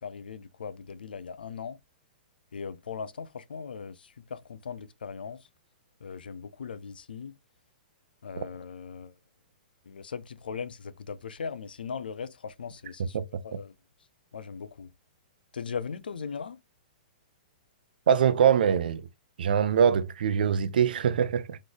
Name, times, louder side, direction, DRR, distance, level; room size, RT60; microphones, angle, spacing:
voice 1, 0.0-1.8 2.5-5.4 6.0-7.3 8.2-9.1 9.9-13.2 13.4-13.7 14.3-14.9 15.5-16.6, left 6 dB, 85° left, 0.5 m, -39 dB
voice 2, 13.1-13.6 18.1-19.0 19.4-21.6, right 7 dB, 70° right, 0.5 m, -23 dB
4.0 x 3.1 x 3.4 m
hypercardioid pair, 125°, 5 cm